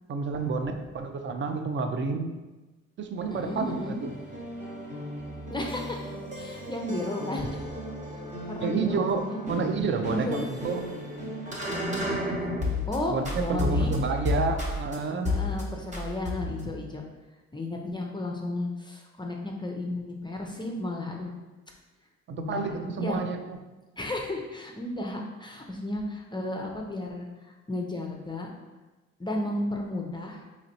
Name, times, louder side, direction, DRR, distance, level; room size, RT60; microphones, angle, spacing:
voice 1, 0.1-2.3 3.0-4.1 8.6-10.8 13.1-15.3 22.3-23.6, right 4 dB, 40° right, 6 dB, 0.4 m, -30 dB
sound 1, 3.2-13.0 13.2-15.0 15.3-15.6 15.9-16.7, left 1 dB, 25° right, 0.9 m, -33 dB
voice 2, 3.3-4.0 5.5-7.6 8.5-9.4 10.1-10.4 11.7-12.5 12.9-13.9 15.2-17.0 17.5-21.3 22.4-23.2 24.0-27.3 27.7-28.5 29.2-30.5, left 1 dB, 15° left, 0 dB, 0.4 m, -33 dB
4.0 x 3.0 x 2.8 m, 1.2 s
cardioid pair, 90°, 30 cm